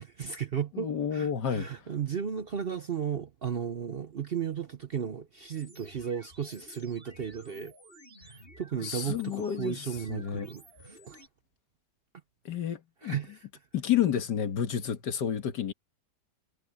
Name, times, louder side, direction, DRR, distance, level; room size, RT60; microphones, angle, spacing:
voice 1, 0.0-7.7 8.2-11.2 13.0-13.3, right 7 dB, 50° right, 0.7 m, -35 dB
voice 2, 0.7-1.9 8.8-10.5 12.5-13.2 13.7-15.7, left 9 dB, 90° left, 2.0 m, -30 dB
sound 1, 5.6-11.3, right 1 dB, 35° right, 6.4 m, -53 dB
omnidirectional pair, 1.8 m